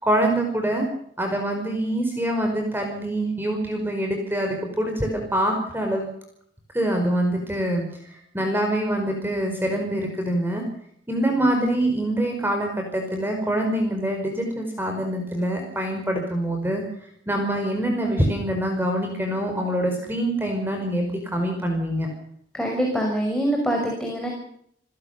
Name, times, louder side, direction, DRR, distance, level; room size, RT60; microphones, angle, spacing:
voice 1, 0.0-0.9 1.2-6.1 6.7-7.8 8.3-10.6 11.1-16.8 17.3-22.1, right 1 dB, 10° right, 3 dB, 5.0 m, -25 dB
voice 2, 22.5-24.3, right 1 dB, 5° left, 0 dB, 5.9 m, -24 dB
30.0 x 16.5 x 6.9 m, 0.70 s
head